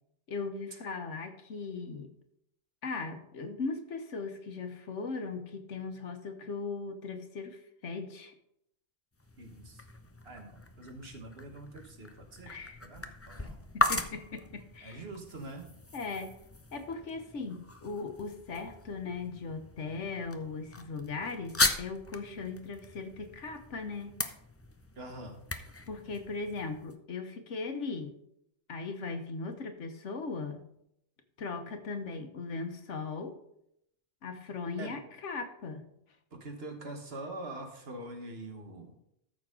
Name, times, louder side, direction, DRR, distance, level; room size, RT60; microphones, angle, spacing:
voice 1, 0.3-2.1 2.8-8.3 12.5-12.8 13.7-15.0 15.9-16.3 16.7-24.2 25.9-28.2 28.7-30.7 31.4-33.4 34.2-35.8, left 4 dB, 80° left, 7 dB, 1.4 m, -38 dB
sound 1, 9.1-27.0, left 2 dB, 20° left, 0.4 m, -38 dB
voice 2, 9.4-9.8 10.2-12.5 12.8-13.6 14.8-15.7 24.9-25.4 34.8-35.0 36.3-39.0, right 2 dB, 55° right, 4 dB, 1.7 m, -44 dB
13.5 x 6.7 x 3.7 m, 0.75 s
omnidirectional pair, 1.2 m